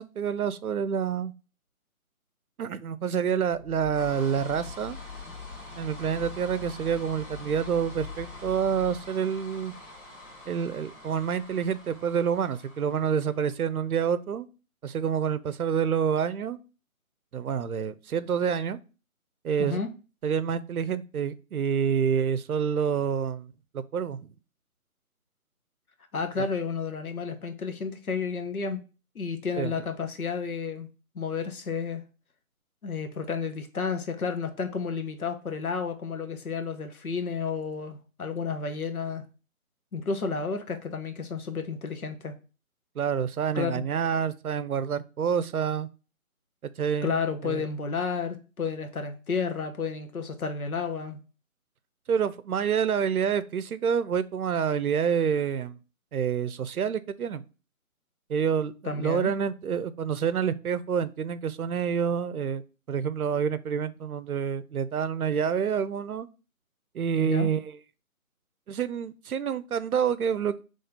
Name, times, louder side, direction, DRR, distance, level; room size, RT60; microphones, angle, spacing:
voice 1, 0.0-1.3 2.6-5.0 5.8-9.7 10.5-14.5 14.8-16.6 17.3-18.8 19.4-19.8 20.2-24.2 29.6-29.7 43.0-45.9 46.6-47.6 52.1-55.8 56.1-57.4 58.3-62.6 62.9-66.3 66.9-67.8 68.7-70.6, right 7 dB, 90° right, 0.6 m, -28 dB
sound 1, 3.4-13.9, left 4 dB, 55° left, 1.6 m, -43 dB
voice 2, 19.6-19.9 26.1-28.8 29.1-30.9 31.1-32.0 32.8-39.2 39.9-42.3 43.5-43.9 47.0-51.2 58.8-59.3 67.2-67.5, left 5 dB, 85° left, 1.0 m, -31 dB
3.6 x 3.2 x 4.1 m
figure-of-eight pair, 165°, 42 cm